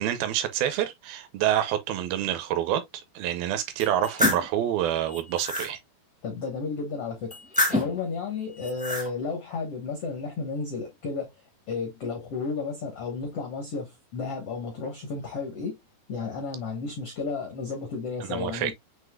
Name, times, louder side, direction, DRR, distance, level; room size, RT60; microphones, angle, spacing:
voice 1, 0.0-5.8 18.2-18.7, right 11 dB, 80° right, 2.4 m, -27 dB
sound 1, 3.8-4.5 5.1-5.7 7.3-8.0 8.6-9.1, left 1 dB, 10° right, 0.3 m, -27 dB
voice 2, 6.2-7.4 7.7-11.3 11.7-15.8 16.1-18.7, left 4 dB, 80° left, 1.3 m, -32 dB
7.8 x 2.9 x 2.2 m
omnidirectional pair, 4.5 m